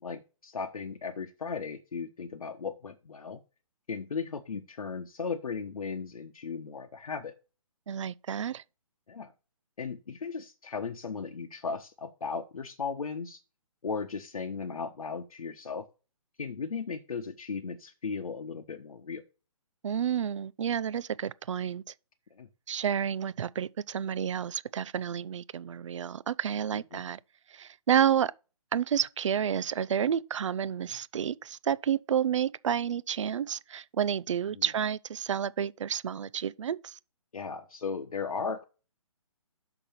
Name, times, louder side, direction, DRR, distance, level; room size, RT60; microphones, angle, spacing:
voice 1, 0.0-3.4 3.9-7.3 9.1-9.3 9.8-13.4 13.8-15.8 16.4-19.2 22.4-22.5 26.9-27.0 34.5-34.6 37.3-38.6, left 5 dB, 75° left, 1.0 m, -36 dB
voice 2, 7.9-8.6 19.8-21.9 22.7-27.2 27.5-28.3 28.7-37.0, right 8 dB, 55° right, 0.5 m, -30 dB
6.0 x 5.9 x 6.8 m
hypercardioid pair, 150°, 18 cm